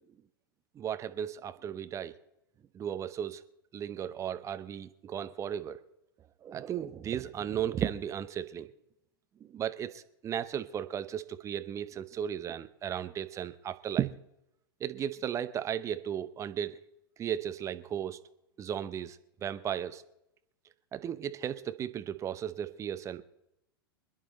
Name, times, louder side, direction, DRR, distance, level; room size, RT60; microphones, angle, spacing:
voice 1, 0.8-2.1 2.7-3.4 3.7-5.8 6.4-8.7 9.4-14.1 14.8-16.8 17.2-18.2 18.6-20.0 20.9-23.2, right 9 dB, 25° right, 12 dB, 0.8 m, -35 dB
26.0 x 10.0 x 4.0 m, 0.86 s
figure-of-eight pair, 90°, 12 cm